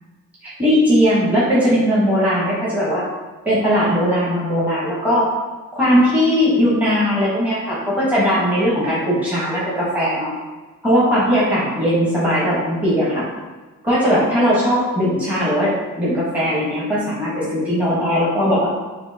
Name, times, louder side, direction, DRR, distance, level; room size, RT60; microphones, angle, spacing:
voice 1, 0.4-3.0 3.4-5.3 5.7-10.3 10.8-13.3 13.8-18.7, equal, 5° right, -8 dB, 1.1 m, -18 dB
4.4 x 2.8 x 2.7 m, 1.3 s
cardioid pair, 90°, 30 cm